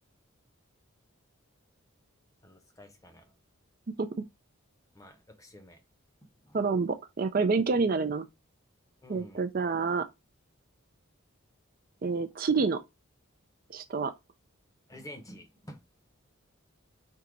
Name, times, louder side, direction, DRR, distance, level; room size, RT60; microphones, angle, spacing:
voice 1, 2.4-3.3 4.9-5.8 6.4-6.6 9.0-9.4 14.9-15.8, equal, 15° left, 0.8 m, -49 dB
voice 2, 6.5-8.3 9.1-10.1 12.0-12.8 13.7-14.1, right 4 dB, 45° right, 0.4 m, -28 dB
4.6 x 2.8 x 3.8 m
head